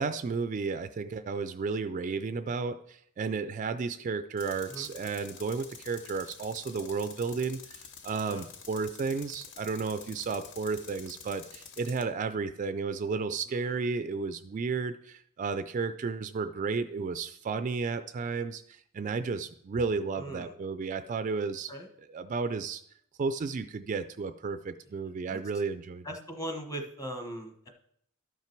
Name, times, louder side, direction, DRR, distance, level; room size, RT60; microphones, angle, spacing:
voice 1, 0.0-21.7 22.1-22.8 23.2-26.1, right 4 dB, 35° right, 10 dB, 0.3 m, -33 dB
Tools, 4.4-12.1, left 6 dB, 55° left, 0.9 m, -48 dB
voice 2, 13.5-13.8 20.1-20.5 21.7-21.9 25.3-25.4 26.0-27.7, right 1 dB, 15° left, 4 dB, 1.1 m, -40 dB
12.0 x 5.8 x 4.5 m, 0.69 s
head